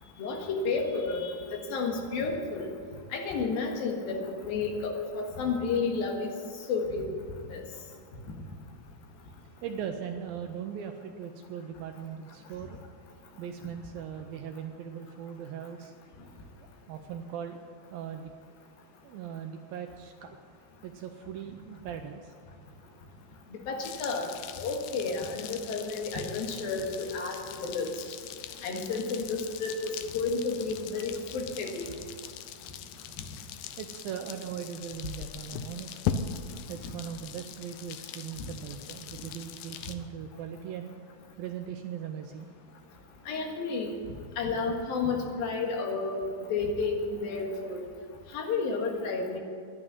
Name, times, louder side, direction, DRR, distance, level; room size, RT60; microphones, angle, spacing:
voice 1, 0.2-2.7 3.1-6.3 6.7-7.1 7.5-7.6 23.7-24.3 24.6-27.9 28.6-31.9 43.3-44.0 44.4-47.8 48.3-49.4, left 4 dB, 65° left, 1 dB, 3.2 m, -31 dB
voice 2, 9.6-12.8 13.4-15.9 16.6-17.6 17.9-18.3 19.0-20.4 20.8-22.3 33.8-36.2 36.7-40.9 41.4-42.5, right 8 dB, 80° right, 5 dB, 2.2 m, -39 dB
sound 1, 23.8-39.9, left 8 dB, 90° left, 2.0 m, -40 dB
11.0 x 9.9 x 9.5 m, 2.2 s
omnidirectional pair, 4.8 m